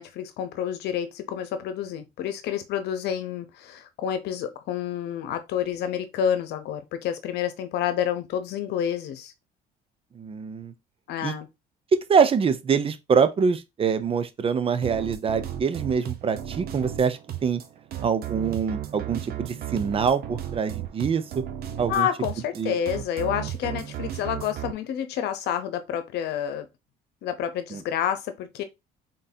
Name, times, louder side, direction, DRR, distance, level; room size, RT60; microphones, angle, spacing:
voice 1, 0.0-9.3 11.1-11.5 21.9-26.7 27.2-28.6, left 9 dB, 80° left, 0.9 m, -29 dB
voice 2, 10.2-10.7 11.2-11.4 11.9-17.6 18.0-21.4 21.8-22.1 22.6-22.7 27.7-27.8, right 6 dB, 35° right, 0.6 m, -24 dB
sound 1, 14.8-24.7, right 11 dB, 65° right, 0.9 m, -35 dB
4.0 x 3.8 x 2.8 m
cardioid pair, 110°, 17 cm